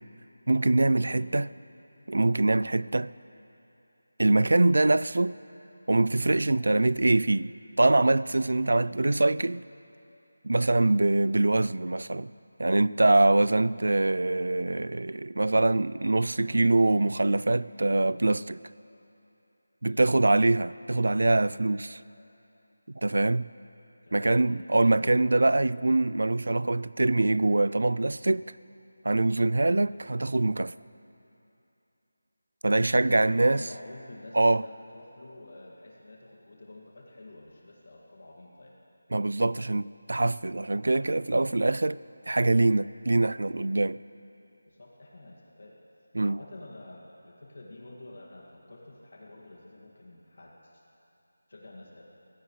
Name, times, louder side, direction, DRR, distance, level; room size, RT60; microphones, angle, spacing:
voice 1, 0.5-1.5 2.1-3.1 4.2-5.3 5.9-7.5 7.8-9.6 10.4-12.3 12.6-18.6 19.8-22.0 23.0-23.5 24.1-28.6 29.0-30.7 32.6-33.6 34.3-34.6 39.1-42.0 42.3-44.0 46.1-46.4, right 2 dB, 65° right, 0.3 m, -24 dB
voice 2, 24.0-24.4 24.7-25.3 33.0-38.7 44.7-45.8 46.2-50.8 51.5-52.0, left 2 dB, 50° left, 2.1 m, -48 dB
24.5 x 16.0 x 3.2 m
figure-of-eight pair, 175°, 0 cm